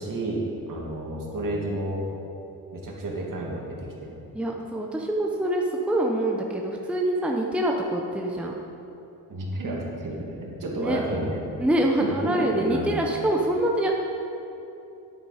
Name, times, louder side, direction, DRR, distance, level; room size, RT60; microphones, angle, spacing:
voice 1, 0.0-2.0 2.7-4.2 9.3-11.4 12.0-13.0, right 1 dB, 50° right, -2 dB, 2.3 m, -31 dB
voice 2, 4.3-8.5 10.8-11.0 11.6-13.9, right 1 dB, 5° right, 0 dB, 0.9 m, -25 dB
9.5 x 8.5 x 4.3 m, 2.8 s
cardioid pair, 80°, 40 cm